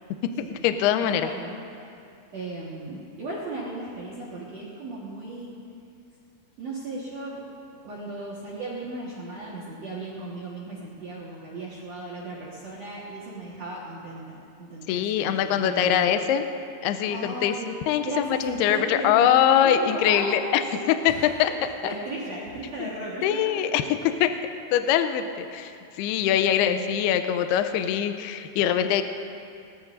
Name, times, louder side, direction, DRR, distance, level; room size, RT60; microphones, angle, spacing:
voice 1, 0.4-1.3 14.9-16.5 16.8-17.5 17.9-20.6 21.0-21.1 21.4-21.5 22.8-22.9 23.2-23.8 24.2-24.3 24.7-25.7 26.0-29.0, left 10 dB, 85° left, 8 dB, 2.3 m, -23 dB
voice 2, 1.0-1.5 2.3-5.5 6.6-7.5 7.8-16.2 17.1-17.8 18.0-19.3 19.6-23.6 26.5-26.9, right 2 dB, 60° right, -6 dB, 1.8 m, -36 dB
20.5 x 19.0 x 2.6 m, 2.5 s
omnidirectional pair, 5.3 m